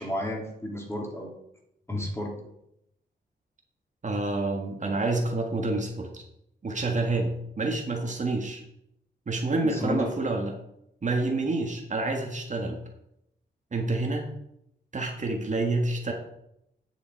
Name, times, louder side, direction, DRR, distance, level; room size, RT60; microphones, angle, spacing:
voice 1, 0.0-1.3 1.9-2.3 9.6-10.1, left 1 dB, 15° left, 0 dB, 2.8 m, -32 dB
voice 2, 4.0-6.2 6.6-8.6 9.3-10.5 11.0-12.8 13.7-14.3 14.9-16.1, right 2 dB, 40° right, 1 dB, 1.6 m, -28 dB
9.3 x 6.9 x 4.5 m, 0.79 s
cardioid pair, 85°, 19 cm